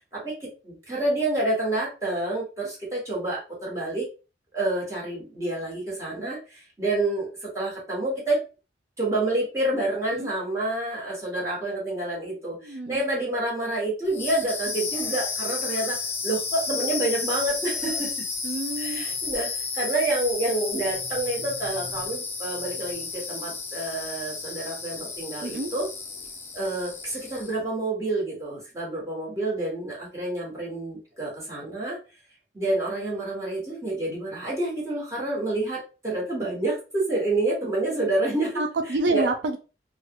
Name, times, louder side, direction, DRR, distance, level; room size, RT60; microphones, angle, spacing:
voice 1, 0.1-4.1 4.5-8.4 9.0-16.0 16.2-18.1 18.8-25.9 26.5-32.0 32.5-38.6 39.1-39.3, right 2 dB, 20° right, -6 dB, 1.4 m, -28 dB
voice 2, 12.6-13.0 18.4-19.1 25.4-25.7 38.6-39.6, right 2 dB, 85° right, 6 dB, 0.4 m, -28 dB
sound 1, 14.1-27.6, left 4 dB, 15° left, 0.4 m, -32 dB
3.2 x 2.4 x 2.9 m, 0.33 s
head